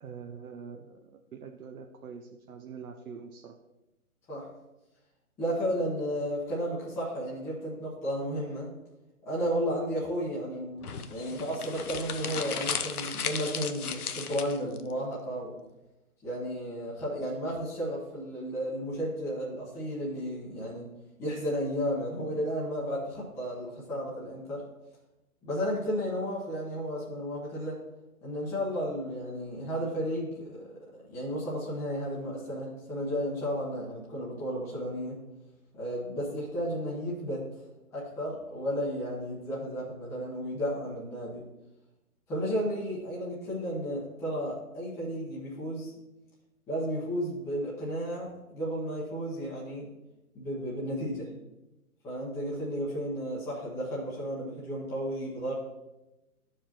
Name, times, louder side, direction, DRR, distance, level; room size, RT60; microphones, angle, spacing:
voice 1, 0.0-3.5, right 6 dB, 75° right, 4 dB, 0.9 m, -44 dB
voice 2, 5.4-8.7 9.2-15.5 16.2-20.9 21.2-24.6 25.4-27.8 28.2-35.2 35.7-37.4 37.9-41.4 42.3-45.9 46.7-49.9 50.3-51.3 52.0-55.5, equal, 5° left, -8 dB, 1.0 m, -33 dB
sound 1, 10.8-14.8, left 7 dB, 80° left, 0.9 m, -35 dB
13.5 x 4.8 x 2.9 m, 0.99 s
hypercardioid pair, 155°, 44 cm